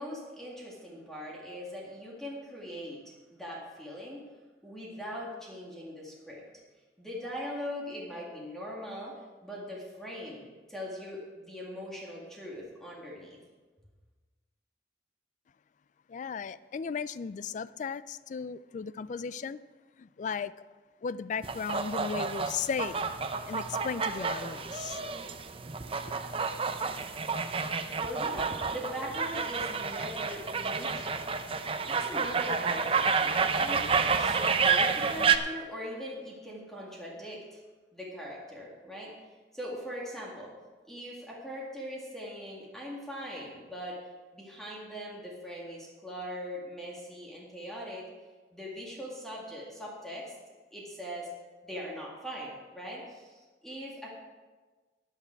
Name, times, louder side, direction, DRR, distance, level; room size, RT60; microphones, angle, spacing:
voice 1, 0.0-4.3 4.6-6.4 7.0-13.4 28.0-31.3 31.8-37.6 37.9-39.1 39.5-40.5 40.9-44.0 44.3-48.1 48.5-50.4 50.7-51.3 51.6-54.1, equal, ahead, -4 dB, 2.1 m, -41 dB
voice 2, 16.1-19.6 20.0-20.5 21.0-23.1 23.5-25.0, left 6 dB, 45° left, 17 dB, 0.3 m, -36 dB
sound 1, 21.4-35.4, right 5 dB, 30° right, 0.6 m, -30 dB
14.0 x 9.2 x 4.6 m, 1.3 s
head